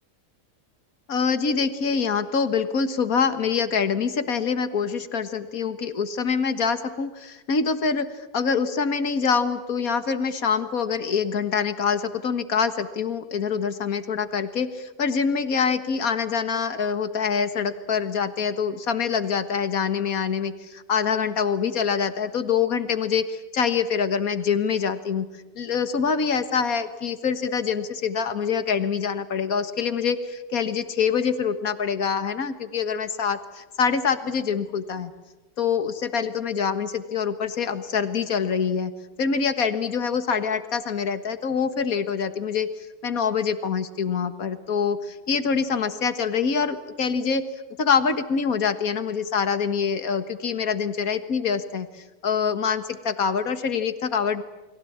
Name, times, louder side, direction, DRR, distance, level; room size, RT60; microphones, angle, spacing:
voice 1, 1.1-8.1 8.3-25.3 25.6-35.1 35.6-38.9 39.2-42.7 43.0-47.4 47.8-51.9 52.2-54.4, left 6 dB, 65° left, 10 dB, 2.0 m, -25 dB
29.5 x 22.0 x 8.7 m, 1.1 s
omnidirectional pair, 1.6 m